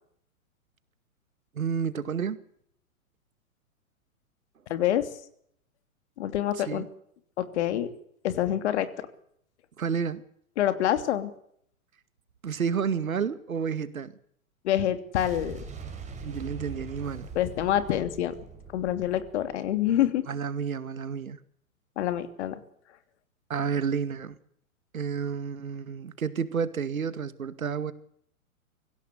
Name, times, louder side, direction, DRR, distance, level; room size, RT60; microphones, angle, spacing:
voice 1, 1.6-2.4 6.6-6.9 9.8-10.2 12.4-14.1 16.2-17.3 20.3-21.4 23.5-24.3 24.9-27.9, right 6 dB, 75° right, 14 dB, 2.2 m, -30 dB
voice 2, 4.7-5.1 6.2-6.8 7.4-7.9 8.2-8.9 10.6-11.3 14.6-15.6 17.3-18.3 18.7-20.2 22.0-22.6, left 11 dB, 50° left, 10 dB, 3.1 m, -26 dB
Boom, 15.1-20.1, right 4 dB, 15° right, 6.0 m, -42 dB
25.5 x 16.5 x 8.4 m, 0.68 s
figure-of-eight pair, 115°, 42 cm